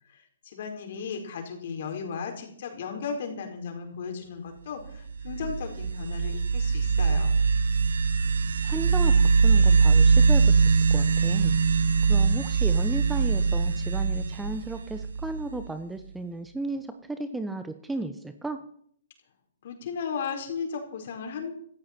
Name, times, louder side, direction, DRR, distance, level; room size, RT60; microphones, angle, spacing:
voice 1, 0.1-7.4 19.6-21.5, left 6 dB, 55° left, 3 dB, 4.4 m, -35 dB
sound 1, 5.1-15.6, right 5 dB, 70° right, 1.0 m, -22 dB
voice 2, 8.6-11.6 12.1-18.6, right 2 dB, 5° right, 9 dB, 0.9 m, -34 dB
16.5 x 14.5 x 4.5 m, 0.64 s
hypercardioid pair, 135°, 0 cm